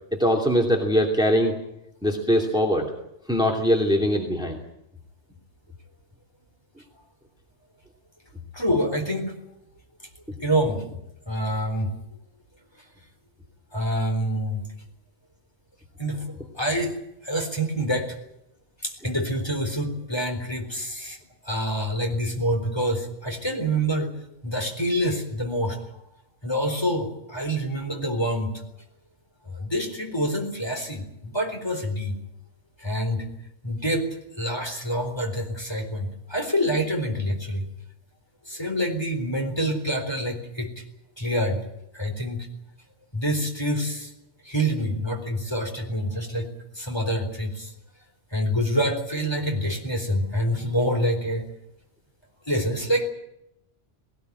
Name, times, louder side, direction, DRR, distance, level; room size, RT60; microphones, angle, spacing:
voice 1, 0.1-1.6 2.0-2.9 3.3-4.6, equal, 5° right, 1 dB, 2.7 m, -22 dB
voice 2, 8.5-9.3 10.4-10.9 11.3-11.9 13.7-14.6 16.0-17.0 17.2-18.2 18.8-21.2 21.4-24.1 24.4-25.8 26.4-28.5 29.5-32.2 32.8-33.3 33.6-34.1 34.4-37.6 38.5-40.8 41.2-41.6 41.9-42.5 43.1-44.1 44.4-46.5 46.7-47.7 48.3-51.5 52.5-53.1, equal, 20° left, 3 dB, 4.1 m, -26 dB
19.5 x 19.0 x 9.5 m, 0.82 s
omnidirectional pair, 1.2 m